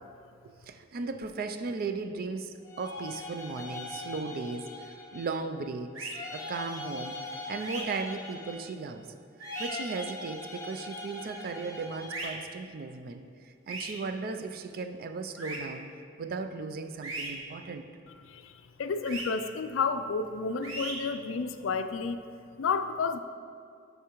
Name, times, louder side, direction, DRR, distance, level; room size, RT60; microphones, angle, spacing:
voice 1, 0.6-9.1 9.6-15.9 16.2-17.9, right 4 dB, 50° right, 8 dB, 0.4 m, -36 dB
sound 1, 2.6-5.5 6.1-8.9 9.4-12.4, left 2 dB, 15° left, 0.7 m, -41 dB
sound 2, 5.9-6.1 7.6-7.8 9.4-9.7 12.1-12.3 13.7-13.9 15.4-15.6 17.0-17.3 19.0-19.2 20.6-20.9, right 2 dB, 90° right, 1.2 m, -37 dB
voice 2, 18.2-22.2 22.6-23.2, left 4 dB, 70° left, 9 dB, 0.4 m, -31 dB
8.2 x 5.5 x 3.0 m, 2.4 s
head